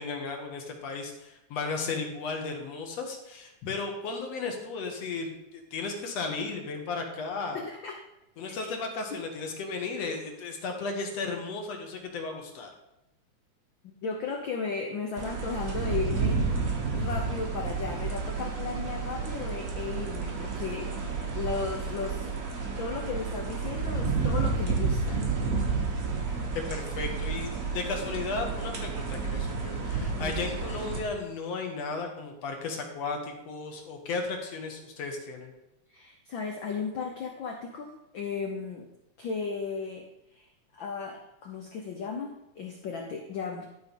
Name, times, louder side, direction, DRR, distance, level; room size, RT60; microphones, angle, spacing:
voice 1, 0.0-7.7 8.4-12.7 26.5-35.5, left 4 dB, 65° left, 2 dB, 2.2 m, -35 dB
voice 2, 7.5-8.0 8.4-8.7 13.8-20.9 21.3-22.3 22.8-25.2 30.2-30.5 35.9-38.9 39.2-40.5 40.7-43.7, left 5 dB, 90° left, 2 dB, 1.0 m, -35 dB
sound 1, 15.2-31.0, right 4 dB, 65° right, 0.8 m, -31 dB
12.0 x 4.5 x 5.3 m, 0.89 s
omnidirectional pair, 3.4 m